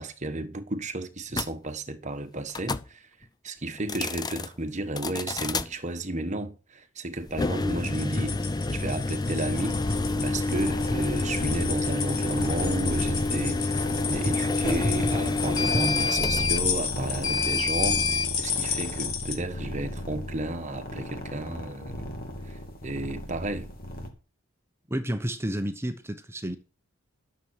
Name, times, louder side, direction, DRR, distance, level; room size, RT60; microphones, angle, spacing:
voice 1, 0.0-3.1 3.4-22.1 22.4-23.7, right 2 dB, 35° right, 1.3 m, -33 dB
sound 1, 1.3-1.5 2.5-2.9 3.8-4.5 5.0-5.7 7.3-18.3, left 3 dB, 20° left, 0.5 m, -28 dB
sound 2, 7.7-19.4, left 7 dB, 75° left, 2.5 m, -33 dB
sound 3, 9.5-24.1, equal, 45° left, 2.7 m, -35 dB
voice 2, 24.9-26.6, right 1 dB, 10° right, 0.8 m, -31 dB
12.5 x 7.1 x 6.3 m
head